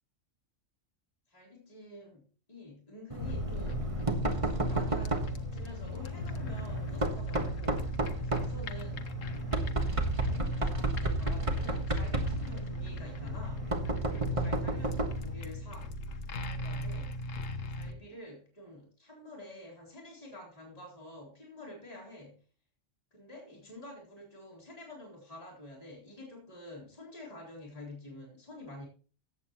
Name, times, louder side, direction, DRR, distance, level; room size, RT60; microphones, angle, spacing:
voice 1, 1.3-3.9 4.2-7.9 8.2-9.2 9.5-9.9 10.2-13.6 13.9-15.9 16.4-17.1 17.7-22.4 23.1-28.9, left 1 dB, 30° left, -2 dB, 3.9 m, -48 dB
Knock, 3.1-15.3, right 2 dB, 25° right, 1.5 m, -33 dB
sound 1, 3.2-17.9, left 1 dB, 85° left, 1.5 m, -37 dB
15.0 x 9.3 x 3.0 m, 0.38 s
omnidirectional pair, 1.3 m